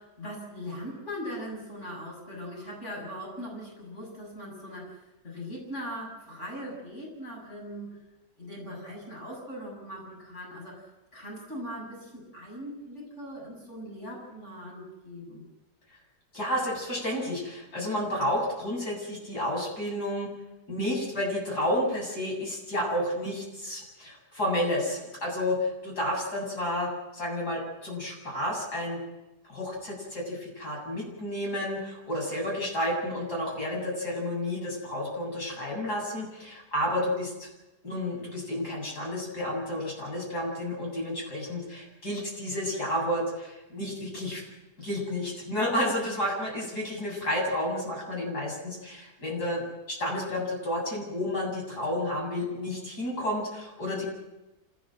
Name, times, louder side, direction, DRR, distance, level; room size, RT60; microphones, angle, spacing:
voice 1, 0.0-8.0 8.4-10.9 11.1-15.4, equal, 45° left, -2 dB, 7.5 m, -40 dB
voice 2, 16.3-20.3 20.7-29.0 29.5-37.5 37.8-44.4 44.8-49.6 49.9-54.0, left 1 dB, 70° left, -2 dB, 8.5 m, -31 dB
26.0 x 18.0 x 7.8 m, 1.0 s
omnidirectional pair, 1.8 m